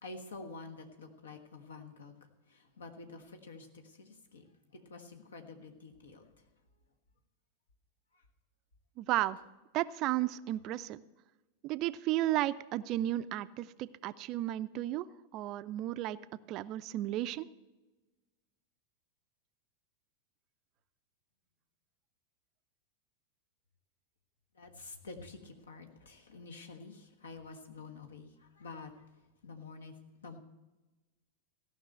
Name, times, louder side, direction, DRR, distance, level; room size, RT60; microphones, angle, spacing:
voice 1, 0.0-6.4 8.1-8.2 24.5-29.1 29.4-30.4, left 3 dB, 70° left, 5 dB, 1.4 m, -49 dB
voice 2, 9.0-9.4 9.7-11.0 11.6-16.2 16.5-17.5, right 15 dB, 40° right, 16 dB, 0.4 m, -33 dB
15.5 x 5.9 x 7.7 m, 1.1 s
figure-of-eight pair, 90°, 0 cm